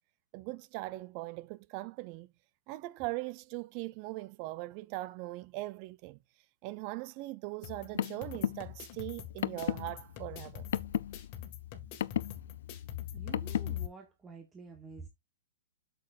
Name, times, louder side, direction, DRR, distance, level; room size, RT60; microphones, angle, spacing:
voice 1, 0.3-2.3 2.7-6.2 6.6-10.7, right 19 dB, 40° right, 0.4 m, -40 dB
Car, 7.6-13.9, left 11 dB, 70° left, 0.4 m, -36 dB
sound 1, 7.6-13.9, left 10 dB, 40° left, 1.8 m, -46 dB
voice 2, 13.1-15.1, right 4 dB, 15° right, 1.1 m, -49 dB
8.2 x 6.8 x 2.5 m
hypercardioid pair, 140°, 0 cm